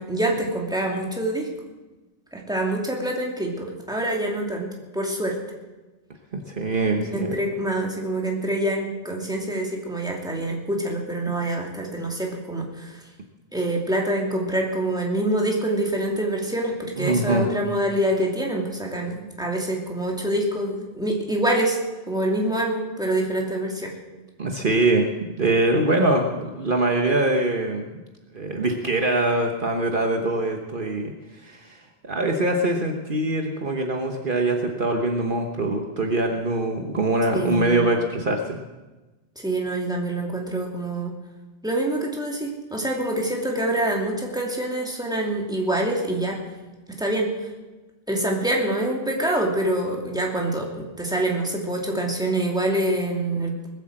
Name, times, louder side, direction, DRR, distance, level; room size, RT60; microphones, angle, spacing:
voice 1, 0.0-1.5 2.3-5.4 7.1-13.0 13.5-21.8 22.1-23.9 37.3-37.8 39.4-41.1 41.6-46.4 47.0-47.3 48.1-53.8, right 1 dB, 5° right, -1 dB, 2.6 m, -26 dB
voice 2, 6.3-7.3 17.0-17.5 24.4-25.1 25.4-27.9 28.3-31.1 31.4-38.6, right 2 dB, 50° right, 3 dB, 1.3 m, -23 dB
20.0 x 8.4 x 7.7 m, 1.2 s
omnidirectional pair, 1.2 m